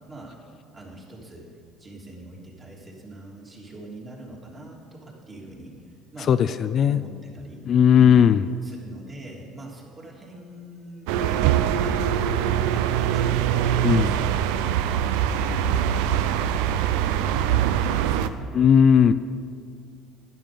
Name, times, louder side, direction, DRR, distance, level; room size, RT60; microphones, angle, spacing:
voice 1, 0.7-1.5 1.8-5.7 6.1-6.3 6.9-8.3 8.6-14.6 14.9-15.1 15.6-17.5 17.8-18.5, right 1 dB, 25° right, -3 dB, 3.2 m, -42 dB
voice 2, 6.3-7.0 7.7-8.4 13.8-14.1 18.5-19.1, left 8 dB, 45° left, 11 dB, 0.4 m, -17 dB
sound 1, 11.1-18.3, right 10 dB, 85° right, 0.5 m, -23 dB
11.5 x 11.0 x 5.2 m, 2.3 s
supercardioid pair, 110°, 0 cm